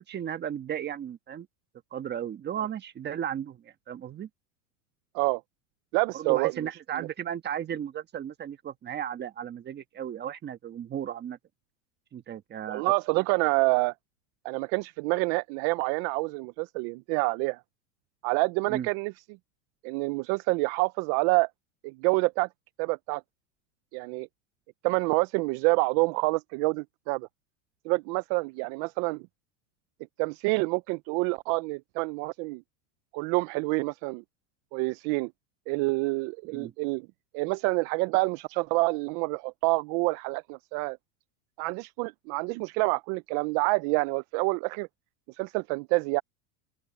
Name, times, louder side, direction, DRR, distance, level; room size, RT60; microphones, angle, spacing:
voice 1, 0.1-1.5 1.9-4.3 6.1-11.4 12.1-12.8 13.1-13.2 18.7-18.9 36.5-36.7, right 9 dB, 25° right, 1.4 m, -35 dB
voice 2, 5.9-6.5 6.9-7.1 12.7-13.9 14.4-17.6 18.2-19.1 19.8-21.5 21.8-22.5 22.8-23.2 23.9-24.3 24.8-27.3 27.8-29.2 30.2-32.6 33.1-34.2 34.7-35.3 35.7-37.1 37.3-41.0 41.6-44.9 45.3-46.2, right 27 dB, 45° right, 0.4 m, -27 dB
open air
supercardioid pair, 135°, 43 cm